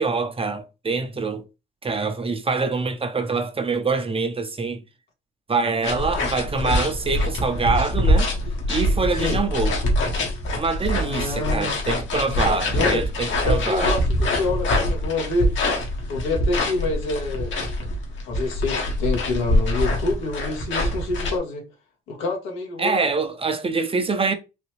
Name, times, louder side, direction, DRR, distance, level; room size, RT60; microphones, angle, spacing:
voice 1, 0.0-1.4 1.8-4.8 5.5-8.3 8.7-9.8 10.5-13.9 22.8-24.3, right 4 dB, 30° right, 0.8 m, -25 dB
sound 1, 5.8-21.4, left 1 dB, 70° left, 1.5 m, -24 dB
voice 2, 11.0-11.7 12.5-13.0 13.4-15.5 16.1-17.5 18.3-21.6 22.1-23.1, left 2 dB, 90° left, 1.5 m, -27 dB
4.1 x 2.8 x 3.1 m
supercardioid pair, 65°, 20 cm